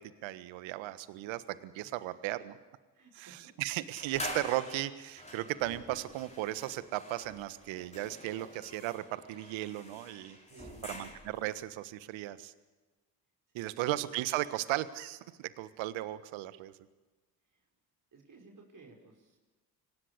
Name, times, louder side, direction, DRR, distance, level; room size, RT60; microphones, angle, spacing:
voice 1, 0.0-2.6 3.2-10.4 10.9-12.5 13.5-16.7, right 15 dB, 65° right, 14 dB, 1.5 m, -36 dB
voice 2, 1.8-2.2 2.9-3.5 3.8-3.9 10.4-11.2 17.5-17.7 18.1-19.4, right 4 dB, 40° right, 1 dB, 5.1 m, -56 dB
sound 1, 4.0-11.5, left 1 dB, 15° left, 6.0 m, -46 dB
25.0 x 17.5 x 8.5 m, 1.3 s
hypercardioid pair, 55°, 49 cm